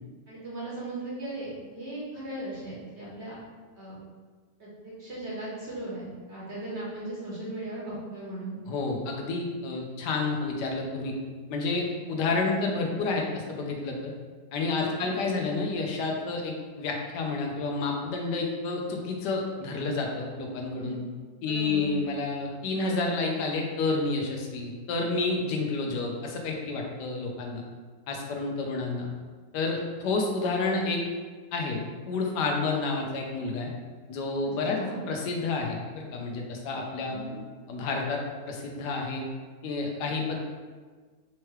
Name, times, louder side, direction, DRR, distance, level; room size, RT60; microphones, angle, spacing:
voice 1, 0.3-3.4 3.7-4.0 4.6-8.6 14.8-15.2 20.7-20.9 21.5-21.9 34.4-35.0 37.0-37.4, right 2 dB, 45° right, -7 dB, 1.2 m, -38 dB
voice 2, 8.7-11.2 11.5-14.1 14.5-21.0 21.4-27.6 28.1-29.1 29.5-31.0 31.5-31.8 32.1-33.7 34.1-34.8 35.1-37.2 37.7-39.3 39.6-40.4, left 3 dB, 75° left, 1 dB, 1.2 m, -30 dB
4.5 x 3.1 x 3.0 m, 1.4 s
omnidirectional pair, 1.9 m